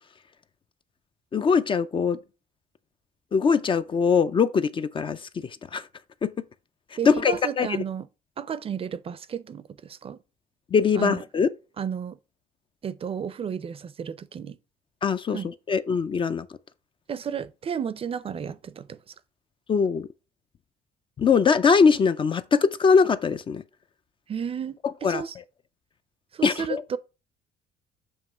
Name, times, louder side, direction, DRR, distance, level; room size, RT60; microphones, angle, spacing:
voice 1, 1.3-2.2 3.3-5.9 6.2-6.3 7.0-7.8 10.7-11.5 15.0-16.5 19.7-20.1 21.2-23.6 25.0-25.2 26.4-26.8, left 5 dB, 30° left, 0.4 m, -22 dB
voice 2, 7.0-8.1 8.4-10.2 10.9-11.2 11.8-12.2 12.8-14.6 15.3-15.5 17.1-19.1 24.3-25.3 26.3-27.0, right 8 dB, 35° right, 0.5 m, -32 dB
7.3 x 2.9 x 5.5 m
cardioid pair, 110°, 17 cm